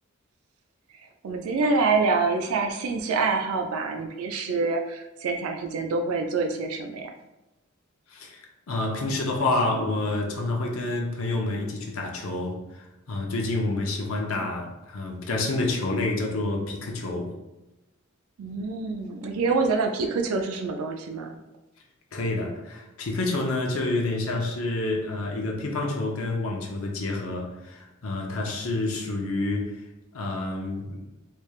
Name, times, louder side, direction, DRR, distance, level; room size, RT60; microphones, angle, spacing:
voice 1, 1.2-7.1 18.4-21.4, right 4 dB, 80° right, 3 dB, 0.4 m, -26 dB
voice 2, 8.1-8.4 8.7-17.3 22.1-29.8 30.1-31.0, left 2 dB, 70° left, 0 dB, 0.7 m, -28 dB
3.3 x 3.1 x 2.3 m, 0.99 s
head